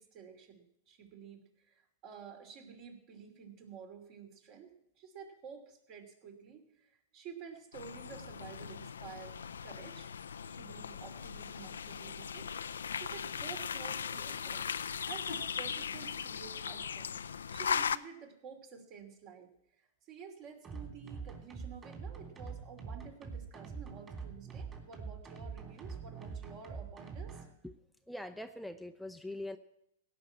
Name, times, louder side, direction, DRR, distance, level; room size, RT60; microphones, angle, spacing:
voice 1, 0.0-9.4 9.6-10.1 10.5-12.5 12.9-14.7 15.0-17.2 17.5-19.5 19.8-27.4, right 6 dB, 45° right, 4 dB, 2.8 m, -51 dB
sound 1, 7.7-18.0, left 7 dB, 90° left, 0.4 m, -38 dB
Bowed string instrument, 8.1-11.6, right 3 dB, 80° right, 5.2 m, -67 dB
sound 2, 20.6-27.5, right 5 dB, 25° right, 3.2 m, -44 dB
voice 2, 28.1-29.6, left 1 dB, ahead, 7 dB, 0.6 m, -42 dB
16.5 x 6.0 x 8.8 m, 0.79 s
hypercardioid pair, 115°, 0 cm